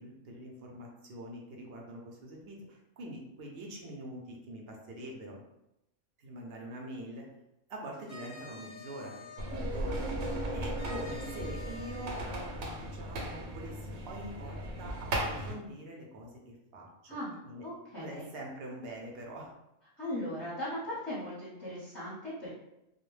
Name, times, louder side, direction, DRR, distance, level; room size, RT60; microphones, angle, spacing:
voice 1, 0.0-5.4 6.2-7.3 7.7-17.6 18.0-19.5, right 1 dB, 60° right, 0 dB, 0.7 m, -45 dB
sound 1, 7.9-9.5 10.8-12.3, left 3 dB, 60° left, 0.7 m, -48 dB
sound 2, 9.4-15.5, right 1 dB, 85° right, 1.0 m, -37 dB
sound 3, 9.5-13.1, right 1 dB, 15° right, 0.8 m, -40 dB
voice 2, 17.6-18.3 20.0-22.5, left 1 dB, 25° left, -9 dB, 0.7 m, -38 dB
2.3 x 2.0 x 3.1 m, 0.87 s
omnidirectional pair, 1.4 m